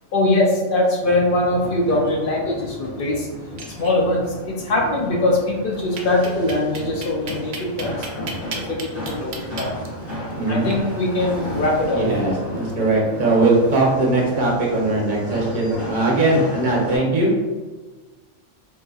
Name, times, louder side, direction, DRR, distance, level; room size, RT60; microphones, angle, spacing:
voice 1, 0.1-3.3 3.7-8.1 8.5-9.8 10.5-12.0, left 2 dB, 60° left, -1 dB, 0.5 m, -22 dB
sound 1, 1.0-17.0, left 1 dB, 45° left, 1.4 m, -34 dB
sound 2, 3.4-4.3 4.6-4.7 5.0-5.1 6.0-13.8, right 4 dB, 60° right, 0.5 m, -38 dB
voice 2, 10.4-10.7 11.9-17.3, right 2 dB, 45° right, -3 dB, 0.9 m, -20 dB
3.8 x 2.7 x 2.3 m, 1.3 s
omnidirectional pair, 1.4 m